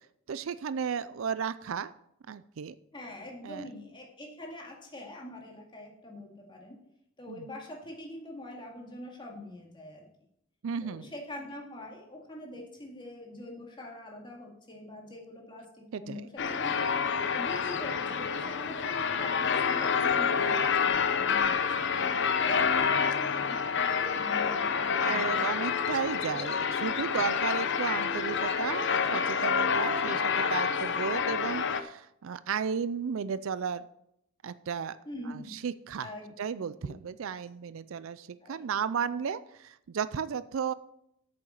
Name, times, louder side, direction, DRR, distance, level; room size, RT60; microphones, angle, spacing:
voice 1, 0.3-1.9 2.3-2.8 3.4-3.7 7.3-7.5 10.6-11.1 15.9-16.3 25.0-33.9 34.4-35.0 35.3-36.1 36.4-40.7, right 6 dB, 65° right, 16 dB, 0.4 m, -34 dB
voice 2, 2.9-6.8 7.2-10.1 10.8-16.9 17.3-25.6 26.3-26.7 35.1-35.5 36.0-37.1 38.4-38.6, left 1 dB, 25° left, 0 dB, 2.2 m, -44 dB
sound 1, 16.4-31.8, left 6 dB, 60° left, 0.7 m, -28 dB
8.6 x 6.9 x 6.5 m, 0.76 s
head